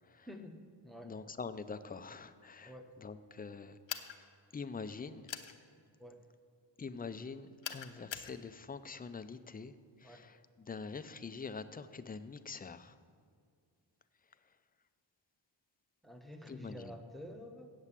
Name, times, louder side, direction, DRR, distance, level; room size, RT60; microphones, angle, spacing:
voice 1, 0.3-0.6 0.8-1.1 2.6-2.9 6.0-6.2 7.9-8.0 10.0-10.2 16.0-17.7, left 1 dB, ahead, 5 dB, 0.8 m, -49 dB
voice 2, 1.0-3.8 4.2-4.3 4.5-5.3 6.8-13.0 14.5-14.6 16.5-16.9, left 4 dB, 20° left, 11 dB, 0.3 m, -45 dB
sound 1, 3.9-4.2 5.3-5.5 7.6-8.3, left 9 dB, 80° left, 0.8 m, -41 dB
8.1 x 7.4 x 8.2 m, 2.2 s
wide cardioid pair, 130°, 45 cm